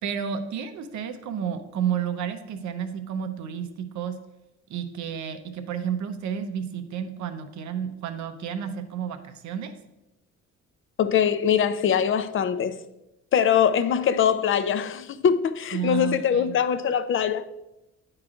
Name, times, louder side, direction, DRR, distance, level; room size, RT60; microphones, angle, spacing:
voice 1, 0.0-4.2 4.7-9.7 15.7-16.5, right 8 dB, 70° right, 0.7 m, -31 dB
voice 2, 11.0-12.8 13.3-17.4, left 8 dB, 45° left, 0.4 m, -22 dB
9.6 x 4.8 x 2.4 m
cardioid pair, 90°, 30 cm